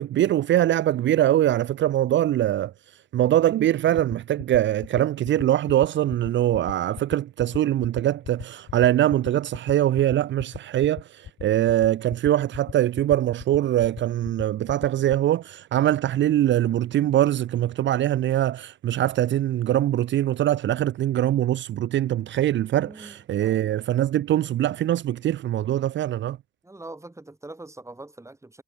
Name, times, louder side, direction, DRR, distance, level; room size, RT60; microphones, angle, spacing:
voice 1, 0.0-2.7 3.1-26.4, right 12 dB, 70° right, 0.5 m, -23 dB
sound 1, 4.0-15.3, left 10 dB, 70° left, 1.2 m, -37 dB
voice 2, 22.8-23.6 26.6-28.6, right 2 dB, 15° right, 5.5 m, -43 dB
cardioid pair, 105°, 20 cm